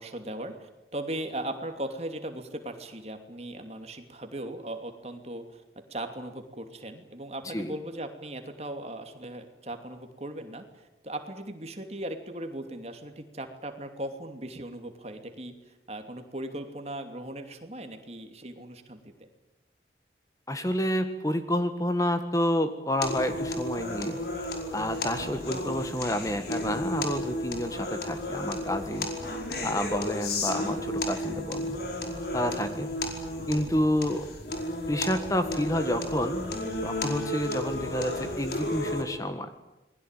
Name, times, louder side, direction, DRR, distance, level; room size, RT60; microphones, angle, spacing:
voice 1, 0.0-19.3 30.4-30.8, right 1 dB, 35° right, 6 dB, 2.8 m, -38 dB
voice 2, 20.5-24.2 24.7-29.1 29.6-31.8 32.3-32.9 33.5-34.3 34.9-36.5 36.8-39.5, left 1 dB, 20° left, 8 dB, 1.6 m, -29 dB
sound 1, 23.0-39.0, left 1 dB, 65° left, 5.0 m, -33 dB
28.0 x 21.0 x 9.1 m, 0.97 s
head